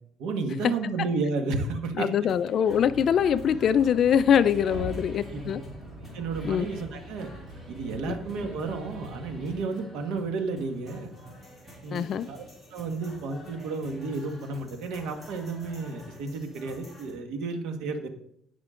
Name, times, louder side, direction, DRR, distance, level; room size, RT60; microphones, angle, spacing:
voice 1, 0.2-2.1 4.7-4.8 5.3-5.5 6.1-7.3 7.7-11.1 11.8-12.4 12.7-18.1, right 3 dB, 80° right, 5 dB, 1.7 m, -32 dB
voice 2, 2.0-5.6 6.4-6.7 8.1-8.2 11.9-12.3, left 8 dB, 40° left, 14 dB, 0.4 m, -23 dB
sound 1, 2.2-17.1, equal, 10° right, 3.2 m, -49 dB
sound 2, 2.6-9.6, equal, 45° right, 3.4 m, -42 dB
17.0 x 6.0 x 3.8 m, 0.70 s
cardioid pair, 170°, 0 cm